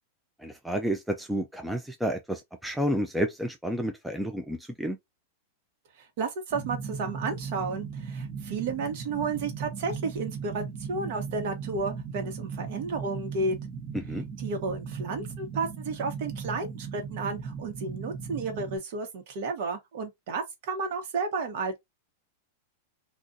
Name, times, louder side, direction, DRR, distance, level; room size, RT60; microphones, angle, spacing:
voice 1, 0.4-5.0 13.9-14.2, equal, ahead, 0.3 m, -30 dB
voice 2, 6.0-13.6 14.4-21.8, right 4 dB, 55° right, 1.1 m, -32 dB
sound 1, 6.5-18.8, right 6 dB, 30° right, 1.1 m, -37 dB
2.5 x 2.4 x 3.9 m
supercardioid pair, 160°, 0 cm